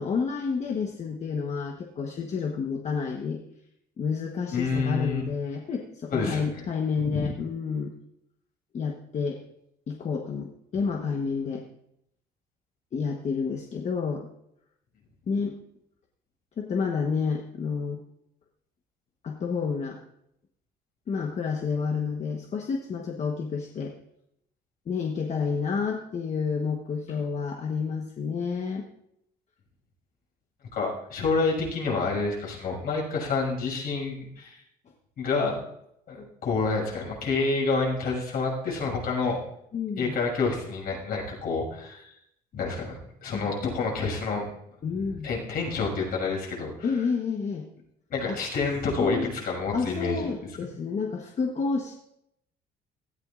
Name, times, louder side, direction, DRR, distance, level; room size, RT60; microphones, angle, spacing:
voice 1, 0.0-3.4 4.0-7.9 8.7-9.4 9.9-11.6 12.9-14.3 15.3-15.6 16.6-18.0 19.2-20.0 21.1-23.9 24.9-28.9 39.7-40.1 43.3-43.5 44.8-45.3 46.8-47.7 48.3-48.4 49.0-49.3 49.7-52.0, left 5 dB, 40° left, 2 dB, 1.2 m, -29 dB
voice 2, 4.5-5.2 6.1-6.7 7.0-7.3 30.7-34.6 35.2-35.6 36.1-39.4 40.0-42.1 42.5-44.4 45.2-46.9 48.1-50.3, left 4 dB, 65° left, -1 dB, 6.3 m, -28 dB
17.5 x 14.0 x 2.5 m, 0.77 s
cardioid pair, 110°, 17 cm